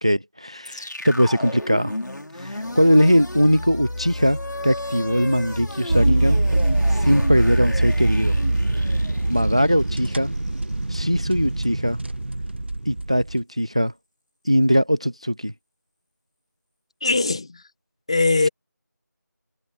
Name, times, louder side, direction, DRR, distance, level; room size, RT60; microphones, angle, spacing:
voice 1, 0.0-1.9 2.3-6.4 6.9-8.4 8.8-8.9 9.3-10.3 10.9-12.0 12.9-13.9 14.4-15.5, equal, 20° right, 0.5 m, -20 dB
sound 1, 0.6-10.8, left 1 dB, 85° left, 5.4 m, -33 dB
sound 2, 5.9-13.4, right 2 dB, 35° right, 1.1 m, -23 dB
voice 2, 17.0-17.6 18.1-18.5, left 3 dB, 15° left, 1.5 m, -20 dB
figure-of-eight pair, 175°, 10 cm